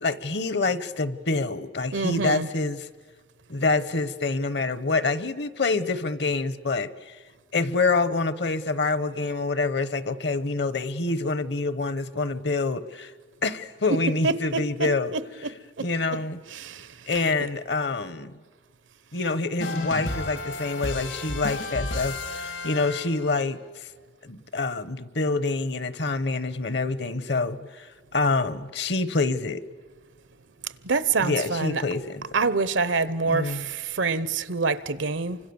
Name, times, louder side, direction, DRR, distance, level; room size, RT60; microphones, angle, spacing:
voice 1, 0.0-2.9 3.5-7.2 7.5-13.1 13.4-15.5 15.8-16.4 17.1-18.4 19.1-23.9 24.2-29.6 31.2-32.3 33.3-33.7, left 3 dB, 65° left, 1.0 m, -27 dB
voice 2, 1.9-2.5 14.2-14.9 15.8-15.9 16.5-16.9 30.8-31.8 32.3-35.4, right 4 dB, 85° right, 0.9 m, -26 dB
sound 1, 19.6-23.5, left 2 dB, 85° left, 2.9 m, -32 dB
29.0 x 25.5 x 7.1 m
head